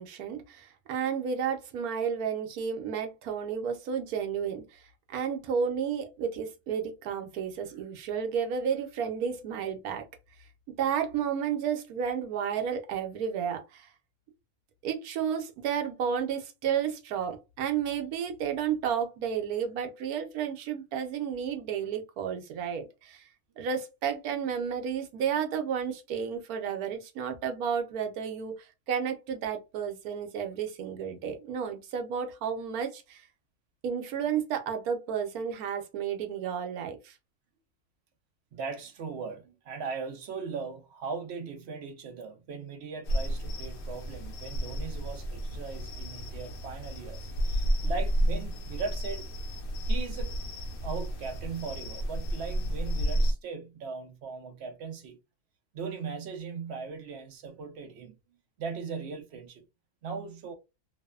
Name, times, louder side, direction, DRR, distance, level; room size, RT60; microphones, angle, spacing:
voice 1, 0.0-4.8 5.1-10.1 10.7-13.9 14.8-23.3 23.6-33.3 33.8-37.1, right 7 dB, 80° right, 1.1 m, -32 dB
voice 2, 38.5-49.3 49.9-50.3 50.8-55.2 55.7-58.2 58.6-59.6 60.0-60.5, right 5 dB, 65° right, 0.7 m, -39 dB
sound 1, 43.0-53.3, right 1 dB, 75° left, 1.1 m, -31 dB
2.9 x 2.0 x 2.3 m
omnidirectional pair, 1.5 m